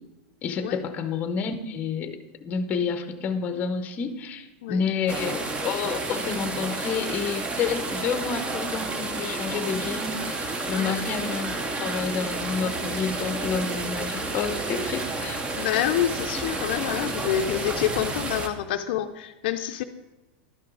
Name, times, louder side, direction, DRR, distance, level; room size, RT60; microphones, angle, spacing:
voice 1, 0.4-15.4, left 6 dB, 25° left, 9 dB, 0.7 m, -29 dB
sound 1, 5.1-18.5, right 2 dB, 15° right, 0.6 m, -31 dB
voice 2, 15.5-19.8, left 11 dB, 65° left, 8 dB, 0.5 m, -27 dB
11.5 x 5.9 x 3.8 m, 1.0 s
supercardioid pair, 155°, 6 cm